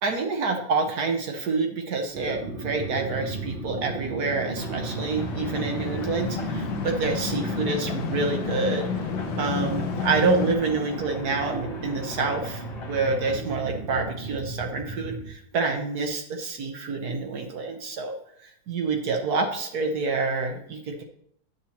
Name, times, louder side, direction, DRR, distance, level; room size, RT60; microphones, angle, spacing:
voice 1, 0.0-8.9 9.4-18.2 18.7-21.0, right 4 dB, 65° right, 4 dB, 1.4 m, -27 dB
sound 1, 2.1-15.3, right 3 dB, 35° right, 1.0 m, -35 dB
sound 2, 4.6-13.4, left 4 dB, 60° left, 1.3 m, -40 dB
sound 3, 5.1-10.6, left 7 dB, 80° left, 1.2 m, -31 dB
9.4 x 7.3 x 2.9 m, 0.68 s
omnidirectional pair, 1.8 m